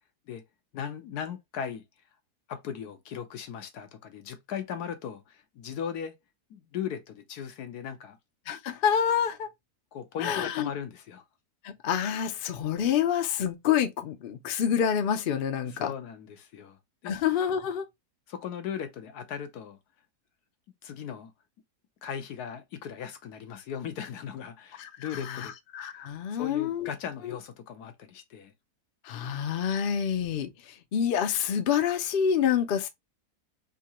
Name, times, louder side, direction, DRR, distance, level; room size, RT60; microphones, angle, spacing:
voice 1, 0.7-1.8 2.5-6.2 6.5-8.2 9.9-11.2 15.6-16.8 17.0-17.2 18.3-19.8 20.8-21.3 22.0-25.5 26.3-28.5, left 8 dB, 85° left, 1.3 m, -38 dB
voice 2, 8.5-9.5 10.2-10.7 11.6-15.9 17.0-17.9 24.8-26.9 27.2-27.4 29.0-32.9, left 8 dB, 60° left, 0.6 m, -27 dB
3.7 x 2.8 x 2.8 m
omnidirectional pair, 1.6 m